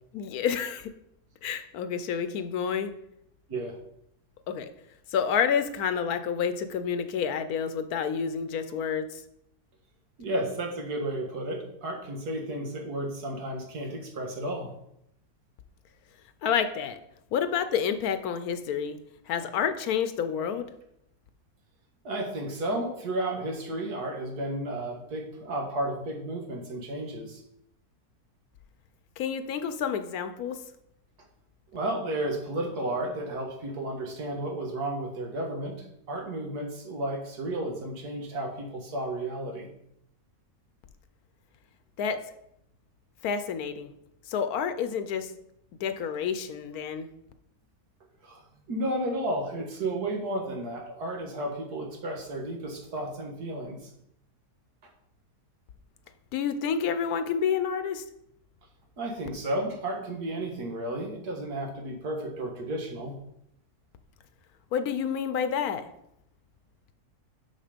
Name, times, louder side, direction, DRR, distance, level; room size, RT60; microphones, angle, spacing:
voice 1, 0.1-0.9 1.4-2.9 4.5-4.7 5.1-9.2 16.4-17.0 17.3-19.0 19.3-20.7 29.2-30.6 42.0-42.2 43.2-43.9 44.3-45.3 45.8-47.1 56.3-58.0 64.7-65.9, left 7 dB, 75° left, 10 dB, 1.1 m, -29 dB
voice 2, 10.2-14.7 22.0-27.4 31.7-39.7 48.2-53.9 59.0-63.2, right 1 dB, 85° right, 1 dB, 2.1 m, -33 dB
6.5 x 6.0 x 5.1 m, 0.76 s
omnidirectional pair, 1.6 m